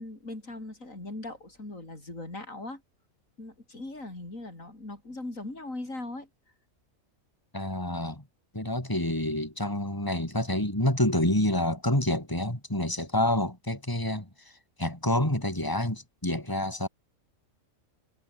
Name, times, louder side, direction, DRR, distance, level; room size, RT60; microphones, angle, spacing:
voice 1, 0.0-2.8 3.4-6.3, left 2 dB, 75° left, 6.1 m, -39 dB
voice 2, 7.5-8.2 8.5-14.3 14.8-16.9, left 1 dB, 15° left, 4.8 m, -28 dB
omnidirectional pair, 1.4 m